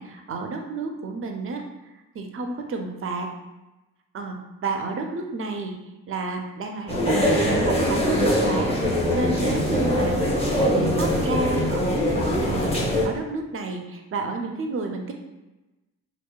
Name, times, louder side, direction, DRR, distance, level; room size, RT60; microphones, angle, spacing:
voice 1, 0.0-1.6 2.1-3.3 4.1-5.8 6.1-7.3 7.6-15.1, right 3 dB, 30° right, 4 dB, 0.5 m, -31 dB
sound 1, 6.9-13.1, equal, 15° left, 0.8 m, -22 dB
2.8 x 2.0 x 2.3 m, 1.0 s
hypercardioid pair, 45°, 42 cm